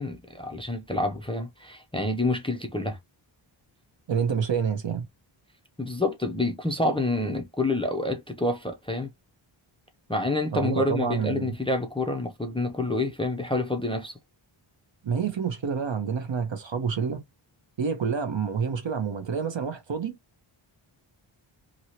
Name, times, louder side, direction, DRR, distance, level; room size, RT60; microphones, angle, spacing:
voice 1, 0.0-3.0 5.8-9.1 10.1-14.1, left 2 dB, 10° left, 0.5 m, -28 dB
voice 2, 4.1-5.0 10.5-11.5 15.0-17.2 17.8-20.2, right 6 dB, 60° right, 1.0 m, -28 dB
2.9 x 2.9 x 2.8 m
wide cardioid pair, 110°, 50 cm